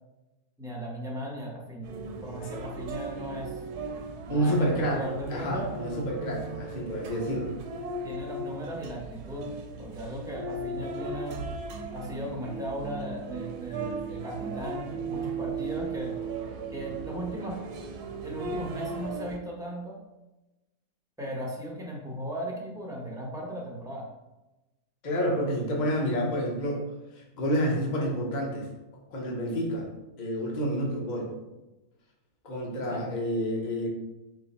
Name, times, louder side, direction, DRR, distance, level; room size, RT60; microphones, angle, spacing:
voice 1, 0.6-1.9 2.2-3.5 4.3-5.7 8.0-11.4 11.9-16.1 16.7-17.6 18.2-20.0 21.2-24.1 32.9-33.1, equal, 5° right, -3 dB, 0.6 m, -37 dB
sound 1, 1.8-19.4, right 3 dB, 90° right, 1.1 m, -37 dB
voice 2, 4.3-5.0 5.3-7.5 25.0-26.8 27.2-28.7 29.1-29.9 30.2-31.3 32.4-33.9, equal, 40° left, -1 dB, 0.8 m, -29 dB
3.9 x 3.3 x 4.1 m, 1.0 s
omnidirectional pair, 1.6 m